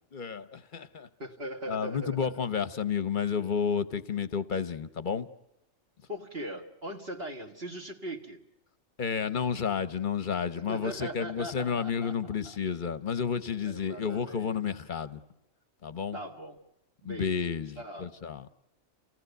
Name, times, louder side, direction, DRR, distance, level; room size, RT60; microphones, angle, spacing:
voice 1, 0.1-1.1 1.7-5.3 9.0-15.2 15.8-16.2 17.0-18.5, left 6 dB, 40° left, 1.0 m, -31 dB
voice 2, 1.2-2.4 6.1-8.4 10.6-12.1 12.4-12.6 13.6-14.6 16.1-16.6 17.0-17.4 17.8-18.1, right 1 dB, 45° right, 1.8 m, -40 dB
29.0 x 17.5 x 8.0 m
omnidirectional pair, 1.5 m